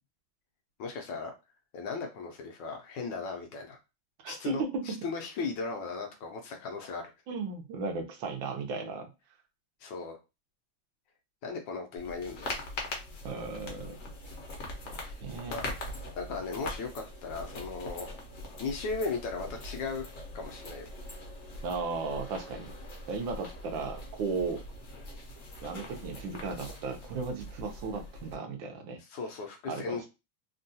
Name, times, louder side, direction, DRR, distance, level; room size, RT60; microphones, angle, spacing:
voice 1, 0.8-1.3 1.7-3.8 4.3-7.0 9.8-10.2 11.4-12.6 15.0-15.2 15.5-15.6 16.2-18.1 18.6-20.0 20.3-20.9 29.1-30.1, left 4 dB, 75° left, 3 dB, 1.2 m, -37 dB
voice 2, 4.2-5.0 7.3-9.1 13.2-14.0 14.9-15.7 21.6-22.7 23.1-24.6 25.6-29.0 29.7-30.1, right 4 dB, 75° right, 4 dB, 1.3 m, -35 dB
sound 1, 12.0-28.4, left 2 dB, 55° left, 0.9 m, -42 dB
3.5 x 2.3 x 2.6 m, 0.26 s
omnidirectional pair, 2.2 m